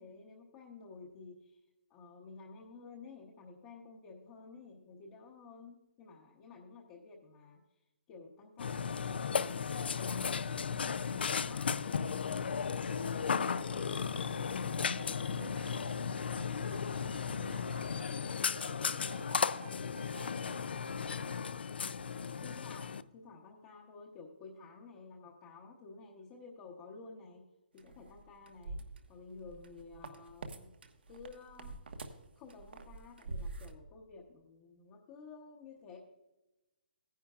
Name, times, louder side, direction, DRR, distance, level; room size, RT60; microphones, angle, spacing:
voice 1, 0.0-1.6 1.9-7.6 8.1-10.6 11.0-12.1 13.3-14.0 21.9-27.5 27.7-28.8 29.1-30.7 31.1-32.0 32.4-36.0, left 4 dB, 20° left, -1 dB, 0.8 m, -53 dB
Burping eructation, 8.6-23.0, left 6 dB, 80° left, 0.4 m, -35 dB
voice 2, 12.8-13.7 14.2-18.1 18.5-20.7, right 4 dB, 55° right, 4 dB, 1.7 m, -53 dB
sound 1, 27.8-30.6 30.8-33.7, right 3 dB, 85° right, 1.3 m, -45 dB
16.0 x 10.5 x 2.4 m, 1.0 s
hypercardioid pair, 175°, 5 cm